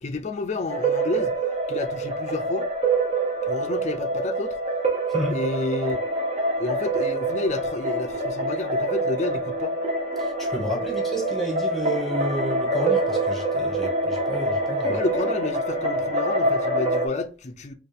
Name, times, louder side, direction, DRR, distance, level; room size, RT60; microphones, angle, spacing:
voice 1, 0.0-1.3 1.7-2.7 3.4-4.6 5.3-6.0 6.6-9.8 10.6-10.8 14.9-17.7, left 3 dB, 40° left, 0.4 m, -30 dB
sound 1, 0.7-17.1, right 2 dB, 35° right, 0.8 m, -26 dB
voice 2, 5.1-5.4 10.2-15.0, right 1 dB, ahead, 1.2 m, -31 dB
4.3 x 2.4 x 3.3 m
head